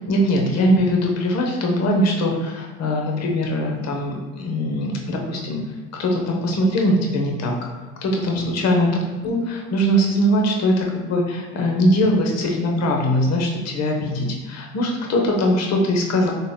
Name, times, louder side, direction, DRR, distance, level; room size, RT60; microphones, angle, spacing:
voice 1, 0.1-5.6 6.0-7.6 8.0-8.9 9.2-16.3, equal, 45° left, 0 dB, 0.9 m, -21 dB
4.0 x 3.2 x 2.3 m, 1.3 s
hypercardioid pair, 65°, 37 cm